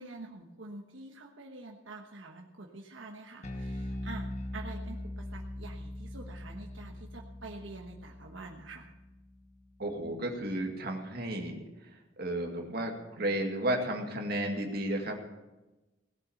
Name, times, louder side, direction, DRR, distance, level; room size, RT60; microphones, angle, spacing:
voice 1, 0.0-8.9, right 2 dB, 80° right, 1 dB, 1.2 m, -47 dB
Bass guitar, 3.4-9.9, left 1 dB, 35° left, 1.3 m, -41 dB
voice 2, 9.8-11.6 12.2-15.2, right 1 dB, 50° right, 1 dB, 2.1 m, -33 dB
17.5 x 8.0 x 7.1 m, 1.1 s
head